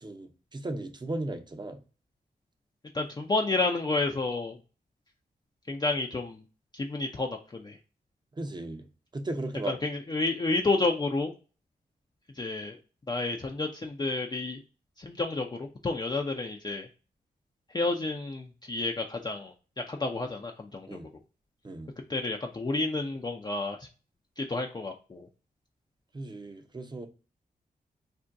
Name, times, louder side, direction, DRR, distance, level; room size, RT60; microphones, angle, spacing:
voice 1, 0.0-1.8 8.4-8.9 9.1-9.8 20.9-21.1 21.6-21.9 26.1-27.1, right 2 dB, 25° right, 6 dB, 0.6 m, -36 dB
voice 2, 2.9-4.6 5.7-6.4 6.7-7.8 9.7-11.3 12.4-12.8 13.1-14.6 15.0-16.9 17.7-19.5 19.9-21.0 22.1-23.9 24.4-25.3, left 3 dB, 25° left, 2 dB, 0.4 m, -30 dB
2.6 x 2.1 x 3.5 m, 0.34 s
cardioid pair, 45°, 17 cm